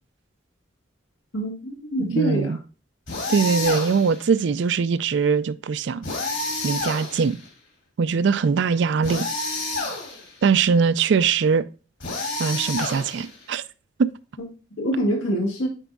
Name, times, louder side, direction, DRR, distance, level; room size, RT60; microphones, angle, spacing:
voice 1, 1.3-2.6 14.8-15.7, right 1 dB, 90° left, 1.9 m, -25 dB
voice 2, 2.0-2.6 3.3-6.1 6.6-7.4 8.0-9.3 10.4-11.6 12.4-13.6 14.0-14.1, right 5 dB, 65° right, 0.4 m, -21 dB
sound 1, 3.1-4.2 6.0-7.5 9.0-10.3 12.0-13.4, left 3 dB, 65° left, 2.7 m, -29 dB
9.0 x 4.6 x 2.3 m
head